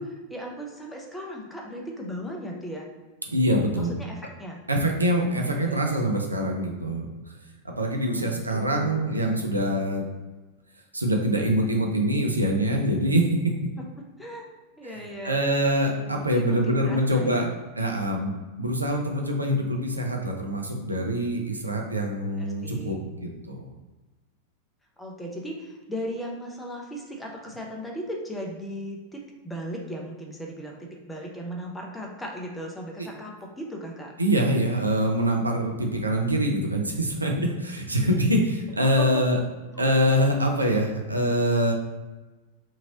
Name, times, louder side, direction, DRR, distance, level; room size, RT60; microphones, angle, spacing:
voice 1, 0.0-2.9 3.7-4.6 5.1-5.8 8.0-9.0 13.8-13.9 14.2-14.5 14.8-15.4 15.9-17.6 22.3-23.0 25.0-34.1 38.8-39.2 39.7-39.9, equal, 10° left, 0 dB, 0.6 m, -37 dB
voice 2, 3.3-3.9 4.7-7.1 7.6-10.0 10.9-13.5 15.2-17.5 17.8-18.3 18.6-23.6 33.0-33.1 34.2-39.4 39.8-41.7, equal, 80° right, 1 dB, 0.4 m, -24 dB
2.8 x 2.7 x 2.7 m, 1.2 s
figure-of-eight pair, 90°, 0 cm